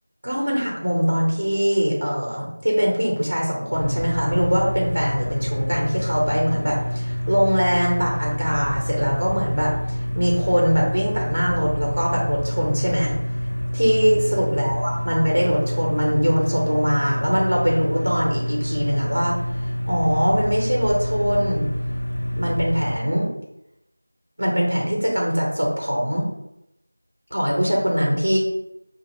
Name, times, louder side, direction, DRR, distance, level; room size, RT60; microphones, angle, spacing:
voice 1, 0.2-9.7 10.1-13.1 13.7-19.3 19.9-21.7 22.4-23.3 24.4-26.3 27.3-28.4, equal, 65° right, -2 dB, 1.2 m, -22 dB
sound 1, 3.7-23.0, equal, 55° left, 0.5 m, -27 dB
4.9 x 2.1 x 3.2 m, 0.84 s
figure-of-eight pair, 175°, 0 cm